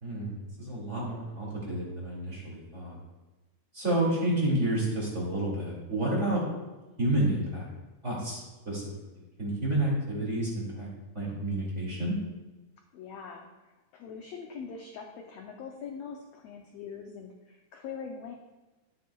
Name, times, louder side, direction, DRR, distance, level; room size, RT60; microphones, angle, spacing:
voice 1, 0.0-3.0 3.7-6.4 7.0-7.7 8.0-8.8 9.1-10.9 11.1-12.2, right 1 dB, 25° right, -5 dB, 2.3 m, -30 dB
voice 2, 12.9-18.3, left 6 dB, 75° left, 2 dB, 1.5 m, -43 dB
12.0 x 9.2 x 2.3 m, 1.1 s
omnidirectional pair, 3.7 m